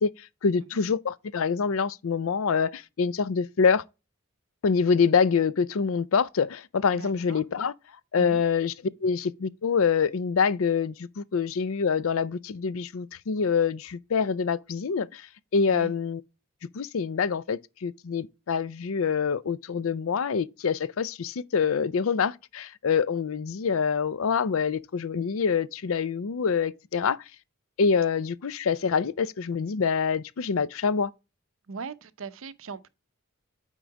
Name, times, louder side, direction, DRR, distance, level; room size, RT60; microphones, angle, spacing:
voice 1, 0.0-3.8 4.6-7.7 8.1-8.7 9.0-16.2 16.7-27.2 27.8-31.1, left 6 dB, 75° left, 0.5 m, -26 dB
voice 2, 6.9-7.4 8.2-8.4 15.7-15.9 31.7-32.9, right 5 dB, 70° right, 0.7 m, -40 dB
9.2 x 3.8 x 4.6 m
head